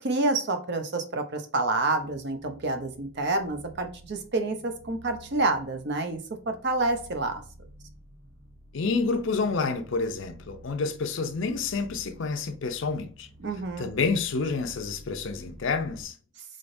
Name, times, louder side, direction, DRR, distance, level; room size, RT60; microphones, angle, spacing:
voice 1, 0.0-6.2 6.5-7.4 13.4-13.9, right 2 dB, 50° right, 0.6 m, -28 dB
sound 1, 1.8-16.0, right 1 dB, 70° right, 1.0 m, -51 dB
voice 2, 8.7-13.3 13.8-16.1, left 4 dB, 55° left, 0.5 m, -29 dB
3.7 x 3.5 x 2.6 m
head